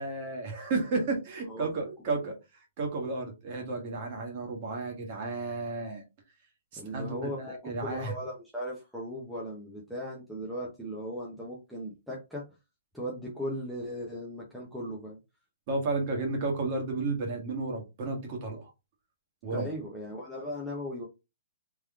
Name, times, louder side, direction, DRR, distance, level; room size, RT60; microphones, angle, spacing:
voice 1, 0.0-2.3 2.8-6.0 6.7-8.1 15.7-18.7 19.4-19.7, right 3 dB, 30° right, 2 dB, 1.4 m, -32 dB
voice 2, 6.8-12.5 12.9-15.2 19.5-21.0, equal, ahead, -5 dB, 0.8 m, -37 dB
3.6 x 3.1 x 3.5 m, 0.25 s
hypercardioid pair, 170°, 0 cm